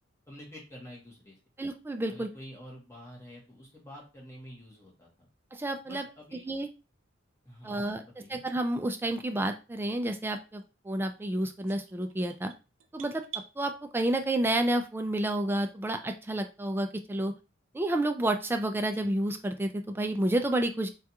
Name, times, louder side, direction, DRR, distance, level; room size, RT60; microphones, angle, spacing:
voice 1, 0.3-1.4 2.1-5.3 5.8-6.5 7.4-8.4, equal, 15° left, -3 dB, 1.2 m, -48 dB
voice 2, 1.6-2.3 5.5-6.0 6.5-6.7 7.6-8.0 8.3-12.5 12.9-13.2 13.6-17.3 17.7-20.9, right 1 dB, 10° right, 6 dB, 0.3 m, -30 dB
sound 1, 11.7-13.5, right 9 dB, 80° right, 0.5 m, -45 dB
3.5 x 2.3 x 2.8 m, 0.30 s
head